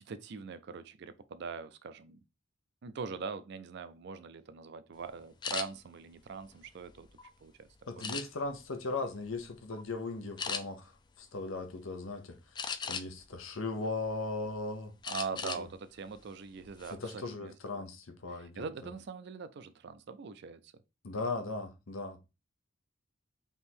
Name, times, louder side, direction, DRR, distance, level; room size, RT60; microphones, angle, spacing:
voice 1, 0.0-2.2 2.8-7.1 7.4-7.7 8.0-8.2 15.1-17.8 18.6-20.7, right 5 dB, 55° right, 0.4 m, -42 dB
sound 1, 5.4-5.7 6.3-7.3 8.0-8.6 9.1-9.4 9.7-9.9 10.4-10.6 12.6-13.3 13.8-14.5 15.0-15.6 16.0-16.2 16.6-16.9, left 6 dB, 20° left, 0.3 m, -38 dB
voice 2, 7.9-10.9 11.2-12.4 12.8-14.9 15.4-15.7 16.9-18.7 21.0-22.2, left 3 dB, 90° left, 0.8 m, -38 dB
3.6 x 3.0 x 4.2 m
head